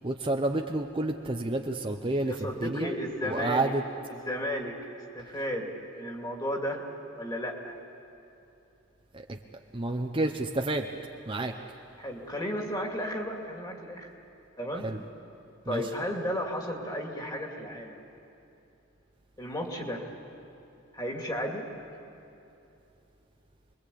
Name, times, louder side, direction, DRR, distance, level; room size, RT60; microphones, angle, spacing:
voice 1, 0.0-2.9 3.2-3.8 9.1-9.4 9.7-10.9 11.3-11.5 14.8-15.0 15.7-15.8, right 2 dB, 25° right, 3 dB, 0.8 m, -30 dB
voice 2, 2.3-3.7 4.1-6.8 7.1-7.7 12.0-14.1 14.6-14.9 15.7-18.0 19.4-20.0 20.9-21.6, equal, 20° left, 1 dB, 2.5 m, -34 dB
28.0 x 22.0 x 8.5 m, 2.8 s
head